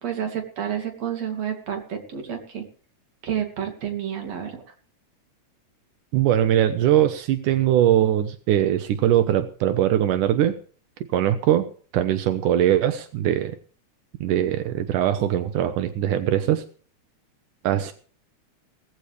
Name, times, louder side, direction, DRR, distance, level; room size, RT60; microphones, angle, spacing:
voice 1, 0.0-2.6 3.2-4.6, right 9 dB, 55° right, 4 dB, 3.7 m, -30 dB
voice 2, 6.1-10.5 11.1-13.6 14.2-16.6 17.6-17.9, right 11 dB, 85° right, 9 dB, 2.6 m, -21 dB
19.0 x 15.0 x 3.3 m, 0.43 s
omnidirectional pair, 3.6 m